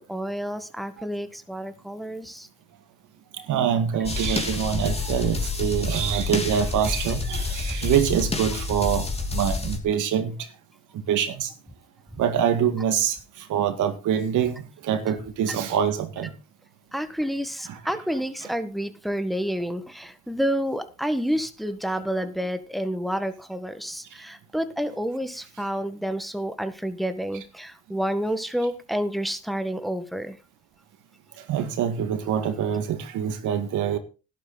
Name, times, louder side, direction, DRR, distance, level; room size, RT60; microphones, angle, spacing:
voice 1, 0.0-2.5 16.9-30.4, equal, ahead, 1.6 m, -29 dB
voice 2, 3.5-9.1 9.3-10.3 11.1-11.5 12.2-13.1 13.5-16.3 31.5-34.0, right 8 dB, 85° right, 2.0 m, -25 dB
sound 1, 4.0-9.8, left 3 dB, 20° left, 2.9 m, -28 dB
11.5 x 11.5 x 4.1 m
cardioid pair, 90°, 30 cm